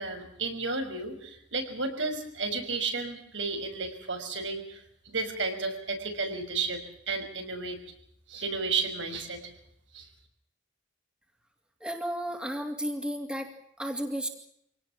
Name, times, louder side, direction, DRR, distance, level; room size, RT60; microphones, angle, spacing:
voice 1, 0.0-7.8 8.3-9.5 9.9-10.1, right 4 dB, 70° right, 5 dB, 5.8 m, -33 dB
voice 2, 11.8-13.5 13.8-14.3, equal, 5° right, 4 dB, 2.7 m, -33 dB
26.0 x 18.5 x 7.4 m, 0.72 s
head